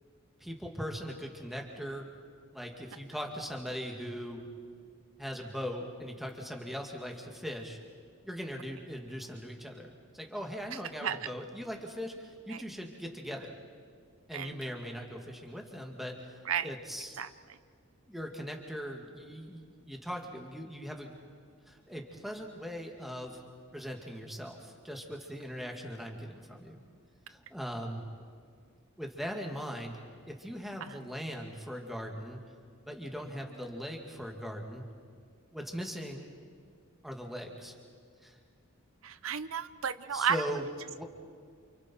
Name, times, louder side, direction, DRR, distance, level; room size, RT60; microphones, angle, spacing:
voice 1, 0.4-2.1 2.5-4.4 5.2-7.8 8.2-13.6 14.3-16.2 16.6-17.2 18.1-21.2 21.7-23.4 23.7-26.8 27.3-28.1 29.0-30.0 30.3-32.4 32.9-34.9 35.5-36.3 37.0-37.7 38.2-38.4 40.1-41.0, equal, ahead, 1 dB, 2.3 m, -40 dB
voice 2, 39.0-40.4, right 8 dB, 80° right, 13 dB, 0.6 m, -31 dB
29.0 x 28.5 x 4.6 m, 2.1 s
head